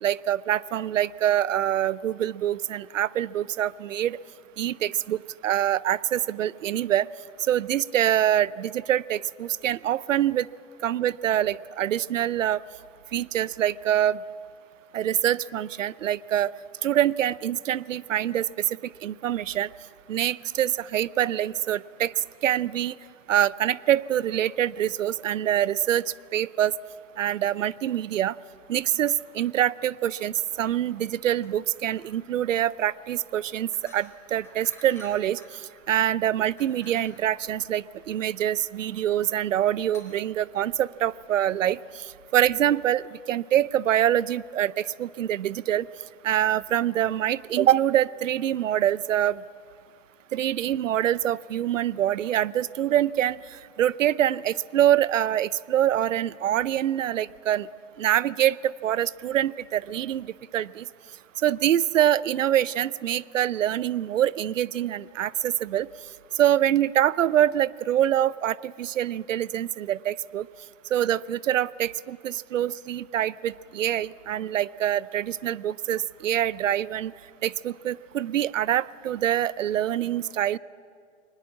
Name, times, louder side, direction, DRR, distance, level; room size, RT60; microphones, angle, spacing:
voice 1, 0.0-4.2 4.6-7.1 7.5-10.5 10.8-12.6 13.1-14.2 14.9-16.5 16.8-18.8 19.0-19.7 20.1-22.1 22.4-23.0 23.3-26.0 26.3-26.7 27.2-28.3 28.7-35.4 35.9-41.8 42.3-43.0 43.3-44.7 45.0-45.9 46.2-49.4 50.3-53.4 53.8-57.7 58.0-60.3 60.5-60.8 61.4-65.9 66.4-70.5 70.9-77.1 77.4-80.6, right 11 dB, 90° right, 21 dB, 0.6 m, -25 dB
sound 1, 31.3-41.3, left 2 dB, 5° left, 4.2 m, -54 dB
23.0 x 20.0 x 7.4 m, 2.2 s
hypercardioid pair, 125°, 37 cm